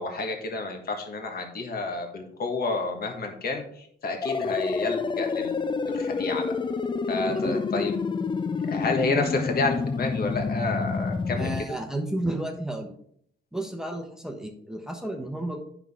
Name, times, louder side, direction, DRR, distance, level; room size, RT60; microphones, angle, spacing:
voice 1, 0.0-6.5 7.1-8.0 8.7-11.5, left 3 dB, 50° left, 3 dB, 1.5 m, -30 dB
sound 1, 4.2-11.6, left 4 dB, 25° left, 0.4 m, -28 dB
voice 2, 11.4-12.9 13.5-15.6, right 1 dB, 5° right, 3 dB, 1.1 m, -32 dB
9.0 x 6.0 x 3.6 m, 0.67 s
cardioid pair, 90°, 20 cm